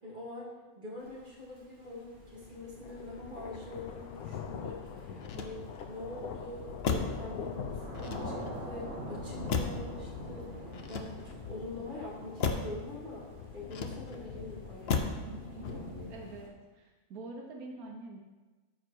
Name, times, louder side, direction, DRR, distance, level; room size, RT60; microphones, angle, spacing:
voice 1, 0.0-8.3 8.6-15.1 15.7-16.1, left 2 dB, 35° right, -6 dB, 2.9 m, -45 dB
Thunder / Rain, 1.0-16.5, right 1 dB, 55° right, 2.2 m, -47 dB
sound 1, 2.0-16.5, left 6 dB, 90° left, 1.2 m, -44 dB
Motor vehicle (road), 5.2-6.0 6.8-7.3 7.9-8.6 9.5-10.0 10.7-11.5 12.4-12.8 13.7-14.3 14.9-15.3 15.6-16.1, left 5 dB, 55° left, 0.9 m, -34 dB
voice 2, 16.1-18.2, right 2 dB, 90° right, 1 dB, 1.4 m, -45 dB
13.0 x 4.9 x 4.5 m, 1.2 s
omnidirectional pair, 1.5 m